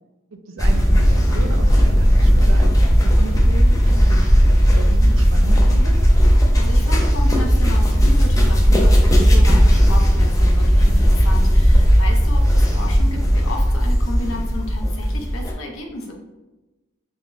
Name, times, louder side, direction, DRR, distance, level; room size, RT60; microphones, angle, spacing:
voice 1, 0.3-5.9, right 3 dB, 65° right, 6 dB, 0.4 m, -34 dB
sound 1, 0.6-15.5, equal, 15° left, 0.4 m, -15 dB
voice 2, 6.6-16.1, left 1 dB, 85° left, 1 dB, 0.6 m, -32 dB
3.6 x 2.1 x 2.5 m, 1.1 s
head